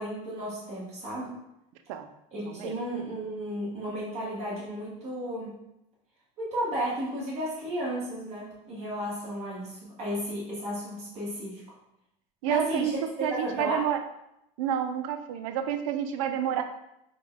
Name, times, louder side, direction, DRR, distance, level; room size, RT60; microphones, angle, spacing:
voice 1, 0.0-1.4 2.3-5.5 6.4-11.6 12.5-13.8, equal, 40° right, -6 dB, 1.2 m, -33 dB
voice 2, 12.4-12.9 13.2-14.0 14.6-16.6, right 10 dB, 90° right, 8 dB, 0.4 m, -29 dB
3.8 x 2.2 x 3.7 m, 0.84 s
supercardioid pair, 120°, 17 cm